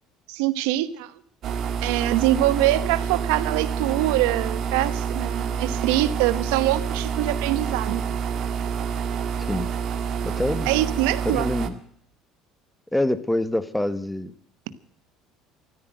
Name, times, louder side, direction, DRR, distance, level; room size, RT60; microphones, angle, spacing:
voice 1, 0.3-1.1 1.8-8.0 10.7-11.5, right 15 dB, 80° right, 14 dB, 1.0 m, -24 dB
sound 1, 1.4-11.7, right 7 dB, 55° right, 1.9 m, -28 dB
voice 2, 10.2-10.8 11.2-11.8 12.9-14.3, left 1 dB, 5° left, 14 dB, 1.4 m, -26 dB
14.0 x 13.5 x 7.8 m, 0.63 s
supercardioid pair, 85°, 0 cm